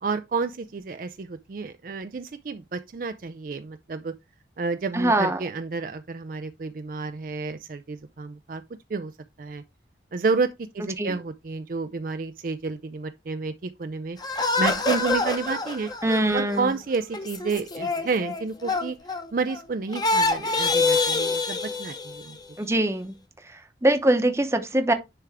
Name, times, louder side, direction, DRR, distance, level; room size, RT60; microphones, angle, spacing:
voice 1, 0.0-4.1 4.6-8.6 8.9-9.1 9.4-9.6 10.1-14.2 14.6-15.9 16.3-19.0 19.3-22.4, right 4 dB, 50° right, 0.4 m, -30 dB
voice 2, 4.9-5.4 11.0-11.2 16.0-16.7 22.6-23.1 23.4-24.9, right 1 dB, 15° right, 0.8 m, -23 dB
sound 1, 14.2-19.6 19.9-22.4, left 3 dB, 20° left, 0.9 m, -26 dB
10.0 x 3.5 x 3.4 m
head